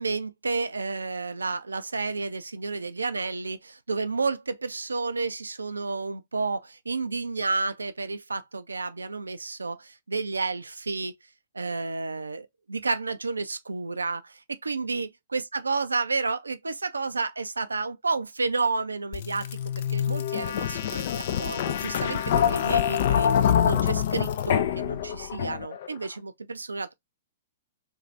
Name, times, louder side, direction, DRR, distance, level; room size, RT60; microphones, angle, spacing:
voice 1, 0.0-11.1 11.5-19.5 19.9-23.3 23.6-26.9, right 3 dB, 85° right, 0.3 m, -31 dB
sound 1, 19.1-25.9, left 9 dB, 55° left, 0.4 m, -25 dB
2.6 x 2.4 x 3.0 m
figure-of-eight pair, 115°, 0 cm